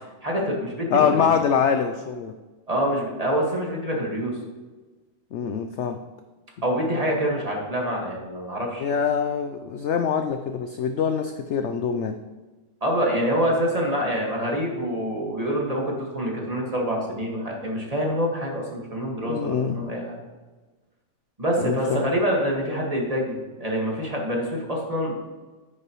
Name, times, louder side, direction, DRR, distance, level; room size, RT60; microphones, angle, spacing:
voice 1, 0.2-1.3 2.7-4.4 6.6-8.9 12.8-20.2 21.4-25.1, equal, 25° right, -2 dB, 1.8 m, -26 dB
voice 2, 0.9-2.4 5.3-6.0 8.8-12.2 19.3-19.8 21.6-22.0, left 7 dB, 70° left, 7 dB, 0.7 m, -24 dB
9.8 x 9.4 x 3.1 m, 1.2 s
omnidirectional pair, 1.7 m